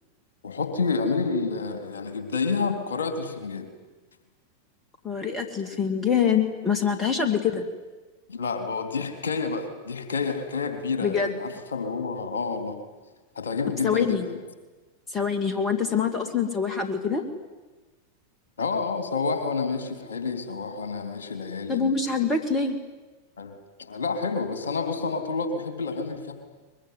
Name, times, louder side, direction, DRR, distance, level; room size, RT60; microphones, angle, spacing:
voice 1, 0.4-3.7 8.3-12.8 13.4-14.4 18.6-22.1 23.4-26.3, left 4 dB, 65° left, 7 dB, 3.5 m, -29 dB
voice 2, 5.0-7.6 11.0-11.3 13.8-14.2 15.1-17.2 21.7-22.8, left 6 dB, 20° left, 7 dB, 2.6 m, -25 dB
23.0 x 22.0 x 9.7 m, 1.2 s
figure-of-eight pair, 90°, 0 cm